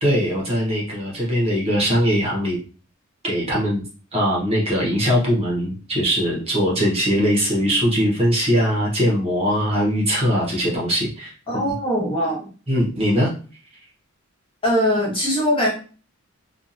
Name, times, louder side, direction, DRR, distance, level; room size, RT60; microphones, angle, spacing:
voice 1, 0.0-2.6 3.2-3.8 4.1-11.3 12.7-13.3, equal, 30° right, -4 dB, 0.9 m, -21 dB
voice 2, 11.5-12.5 14.6-15.7, equal, 25° left, -4 dB, 1.1 m, -21 dB
2.7 x 2.4 x 2.5 m, 0.38 s
head